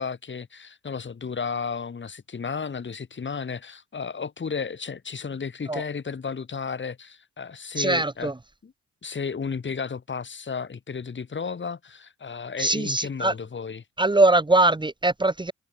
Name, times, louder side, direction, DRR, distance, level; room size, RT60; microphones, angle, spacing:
voice 1, 0.0-8.3 8.6-8.7 9.0-13.8, left 5 dB, 40° left, 7.3 m, -33 dB
voice 2, 7.8-8.3 12.6-13.3 14.0-15.5, right 2 dB, 15° right, 2.5 m, -21 dB
cardioid pair, 90°, 30 cm